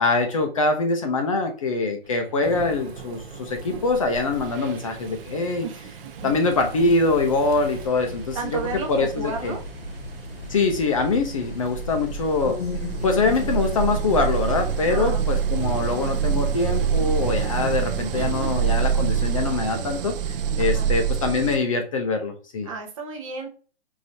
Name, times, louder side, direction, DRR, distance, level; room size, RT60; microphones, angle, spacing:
voice 1, 0.0-5.7 6.2-8.6 8.9-9.5 10.5-12.6 13.0-20.2 20.6-22.7, left 3 dB, 35° left, 4 dB, 0.5 m, -23 dB
Thunderstorm / Rain, 2.4-7.9, right 4 dB, 85° right, 1.2 m, -40 dB
sound 1, 3.8-4.0 4.3-21.6, right 7 dB, 65° right, 0.5 m, -28 dB
sound 2, 6.5-14.8, left 3 dB, 75° left, 1.1 m, -36 dB
voice 2, 8.3-9.6 14.9-15.3 18.1-18.5 20.6-20.9 22.6-23.5, right 4 dB, 30° right, 4 dB, 0.8 m, -33 dB
4.8 x 2.7 x 2.7 m, 0.39 s
hypercardioid pair, 165°, 31 cm